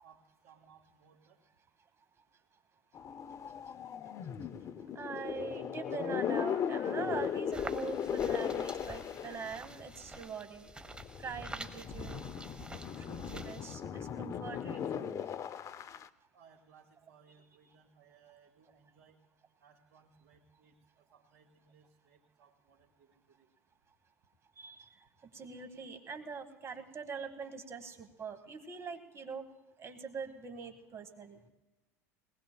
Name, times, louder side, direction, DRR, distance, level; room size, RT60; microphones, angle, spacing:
voice 1, 0.0-1.4 16.3-19.2 19.6-23.5, right 6 dB, 65° right, -6 dB, 2.7 m, -63 dB
sound 1, 2.9-10.2 10.8-16.1, left 8 dB, 40° left, 0.6 m, -37 dB
voice 2, 4.9-10.7 11.2-12.2 13.1-15.3 24.6-24.9 25.3-29.5 29.8-31.4, right 5 dB, 30° right, 8 dB, 1.9 m, -43 dB
sound 2, 7.5-13.7, right 2 dB, 10° right, 1.2 m, -47 dB
21.0 x 19.5 x 2.3 m, 1.1 s
hypercardioid pair, 85°, 8 cm